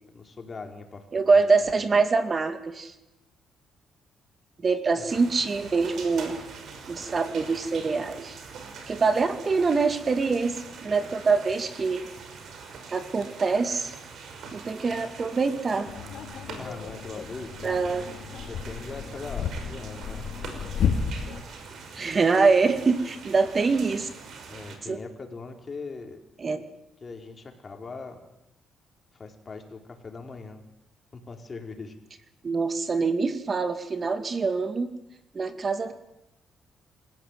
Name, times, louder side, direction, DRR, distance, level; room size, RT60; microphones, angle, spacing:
voice 1, 0.1-1.7 4.6-5.1 16.6-17.8 18.4-20.2 24.5-26.2 27.0-28.2 29.1-30.6 31.1-31.9, left 4 dB, 35° left, 4 dB, 4.5 m, -41 dB
voice 2, 1.1-2.9 4.6-6.4 6.9-8.4 8.9-12.1 12.9-13.9 14.5-15.9 17.6-18.1 22.0-24.1 24.9-25.0 26.4-26.6 32.4-34.9 35.3-35.9, right 4 dB, 35° right, 9 dB, 2.2 m, -24 dB
sound 1, 5.1-24.8, right 5 dB, 70° right, 5.4 m, -43 dB
sound 2, 15.9-21.4, left 6 dB, 70° left, 3.8 m, -32 dB
27.0 x 15.5 x 9.3 m, 0.89 s
cardioid pair, 90°, 0 cm